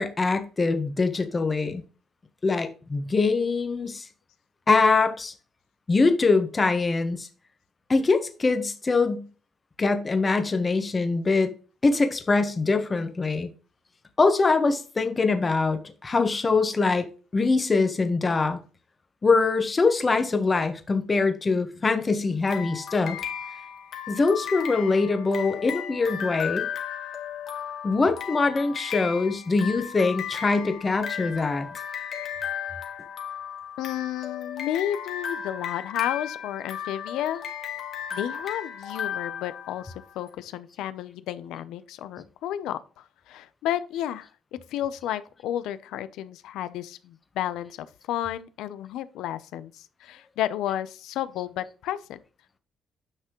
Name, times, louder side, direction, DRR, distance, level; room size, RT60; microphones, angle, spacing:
voice 1, 0.0-1.8 2.4-4.1 4.7-5.3 5.9-7.3 7.9-9.3 9.8-11.5 11.8-13.5 14.2-17.1 17.3-18.6 19.2-23.2 24.1-26.7 27.8-31.7, left 3 dB, 25° left, 1.3 m, -23 dB
sound 1, 22.5-40.1, left 8 dB, 55° left, 1.6 m, -35 dB
voice 2, 33.8-37.4 38.1-52.2, left 11 dB, 85° left, 0.7 m, -32 dB
10.0 x 5.8 x 3.1 m
cardioid pair, 100°, 0 cm